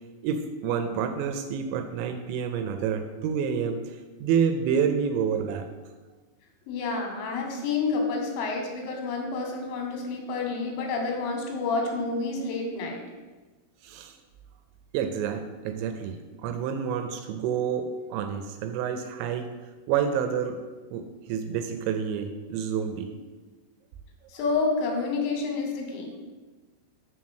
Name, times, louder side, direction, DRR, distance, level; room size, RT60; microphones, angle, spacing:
voice 1, 0.2-3.8 4.2-5.7 13.8-14.2 14.9-19.5 19.9-20.6 20.9-23.1, right 7 dB, 85° right, 7 dB, 2.7 m, -28 dB
voice 2, 6.7-13.0 24.3-26.1, left 4 dB, 85° left, 2 dB, 3.6 m, -29 dB
7.1 x 3.8 x 6.3 m, 1.3 s
omnidirectional pair, 5.5 m